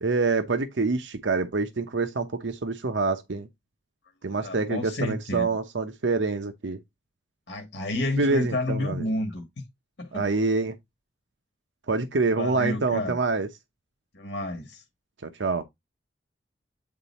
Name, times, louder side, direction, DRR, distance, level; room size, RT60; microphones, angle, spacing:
voice 1, 0.0-3.5 4.2-6.8 8.2-9.1 10.1-10.7 11.9-13.5 15.2-15.6, right 3 dB, 80° right, 0.8 m, -26 dB
voice 2, 4.4-5.5 7.5-9.4 10.0-10.2 12.3-13.2 14.1-14.8, left 2 dB, 65° left, 1.5 m, -30 dB
8.8 x 3.9 x 4.2 m
head